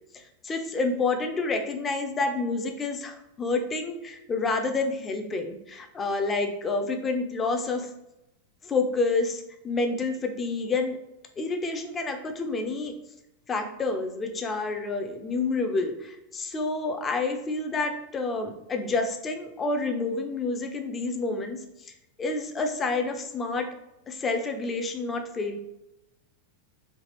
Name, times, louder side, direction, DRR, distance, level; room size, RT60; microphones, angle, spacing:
voice 1, 0.4-7.9 8.7-11.0 11.4-12.9 13.5-21.6 22.2-23.7 24.1-25.6, left 3 dB, 20° left, 6 dB, 0.4 m, -28 dB
3.2 x 2.4 x 2.9 m, 0.89 s
figure-of-eight pair, 90°, 0 cm